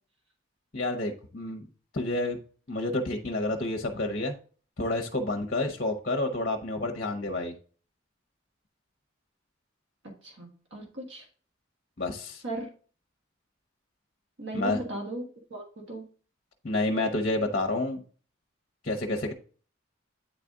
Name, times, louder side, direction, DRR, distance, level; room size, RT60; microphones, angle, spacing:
voice 1, 0.7-1.7 1.9-2.4 2.7-4.3 4.8-7.5 12.0-12.4 14.5-14.8 16.6-18.0 18.8-19.3, left 2 dB, 45° left, 3 dB, 0.8 m, -29 dB
voice 2, 10.2-11.3 12.4-12.7 14.4-16.1, right 1 dB, 65° right, 1 dB, 1.5 m, -37 dB
8.9 x 4.1 x 3.6 m, 0.40 s
head